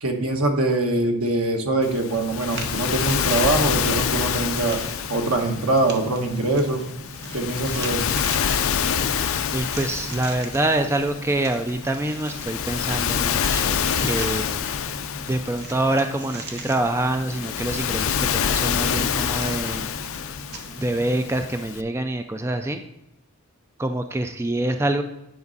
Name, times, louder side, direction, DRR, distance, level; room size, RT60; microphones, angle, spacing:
voice 1, 0.0-4.8 5.1-6.8 7.3-8.1, right 2 dB, 80° right, 3 dB, 1.3 m, -23 dB
Waves surf, 1.8-21.8, left 8 dB, 65° left, 0.4 m, -27 dB
sound 1, 2.5-21.3, right 2 dB, 50° right, 0.9 m, -40 dB
voice 2, 9.5-14.6 15.3-19.9 20.8-22.8 23.8-25.0, right 1 dB, 10° right, 7 dB, 0.3 m, -26 dB
9.5 x 5.3 x 4.0 m, 0.90 s
head